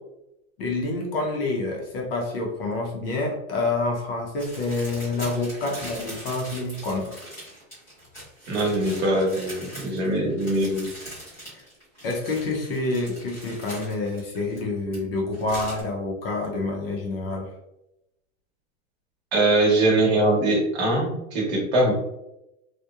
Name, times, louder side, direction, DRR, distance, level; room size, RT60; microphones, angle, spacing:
voice 1, 0.6-7.1 11.4-11.6 12.0-17.5, left 2 dB, 45° left, 0 dB, 0.6 m, -28 dB
sound 1, 4.4-15.0 15.3-15.8, right 1 dB, 5° left, 0.6 m, -41 dB
voice 2, 8.5-10.9 19.3-21.9, right 1 dB, 50° right, -1 dB, 0.9 m, -22 dB
2.9 x 2.1 x 2.2 m, 0.87 s
supercardioid pair, 170°, 41 cm